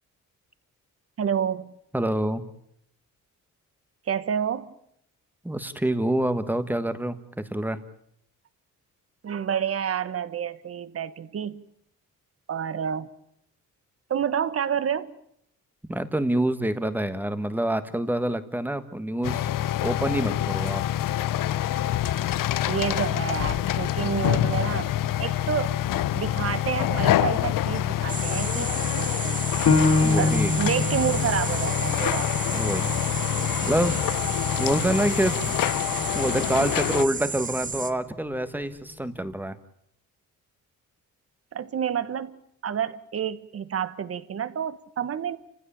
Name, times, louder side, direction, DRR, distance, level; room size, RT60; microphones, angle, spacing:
voice 1, 1.2-1.7 4.1-4.7 9.2-11.6 12.5-13.1 14.1-15.1 22.7-25.8 26.1-29.4 30.2-32.3 41.5-42.4 42.6-45.4, right 8 dB, 45° right, 14 dB, 1.3 m, -29 dB
voice 2, 1.9-2.4 5.4-7.2 7.5-7.8 15.9-19.5 19.8-20.8 30.0-30.5 32.5-32.9 33.6-34.0 34.6-35.6 35.9-39.6, right 1 dB, 5° right, 11 dB, 1.5 m, -26 dB
sound 1, 19.2-37.1, left 13 dB, 90° left, 0.9 m, -26 dB
sound 2, 28.1-37.9, right 4 dB, 25° right, 1.3 m, -33 dB
Piano, 29.7-34.8 35.3-35.4 36.0-36.5, left 3 dB, 55° left, 2.5 m, -27 dB
30.0 x 15.5 x 8.7 m, 0.72 s
cardioid pair, 145°, 32 cm